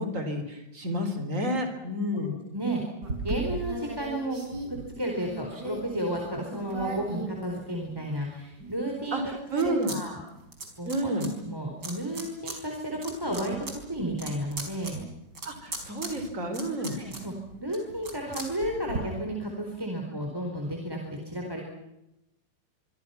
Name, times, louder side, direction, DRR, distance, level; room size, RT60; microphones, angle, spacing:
voice 1, 0.0-2.3 9.1-9.9 10.9-11.3 15.4-17.0, equal, 40° right, 7 dB, 4.2 m, -30 dB
sound 1, 3.0-8.1 8.6-10.0 10.2-11.3 11.8-12.6 12.9-19.0, right 2 dB, 60° right, 5.3 m, -38 dB
voice 2, 3.2-4.4 4.7-10.2 10.8-13.6 13.9-15.0 16.9-17.3 17.6-21.6, right 1 dB, 10° right, 1 dB, 4.4 m, -32 dB
25.5 x 25.0 x 5.9 m, 0.91 s
omnidirectional pair, 2.1 m